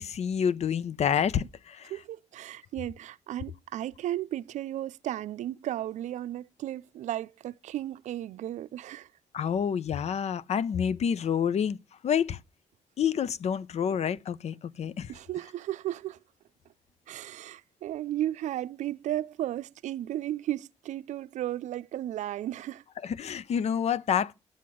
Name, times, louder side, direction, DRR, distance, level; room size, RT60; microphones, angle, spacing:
voice 1, 0.0-1.9 9.3-11.8 12.0-12.4 13.0-15.1 23.0-24.3, left 8 dB, 65° left, 0.6 m, -28 dB
voice 2, 1.9-9.1 15.1-16.2 17.1-22.8, right 13 dB, 85° right, 0.5 m, -34 dB
9.9 x 7.7 x 6.1 m
cardioid pair, 75°, 12 cm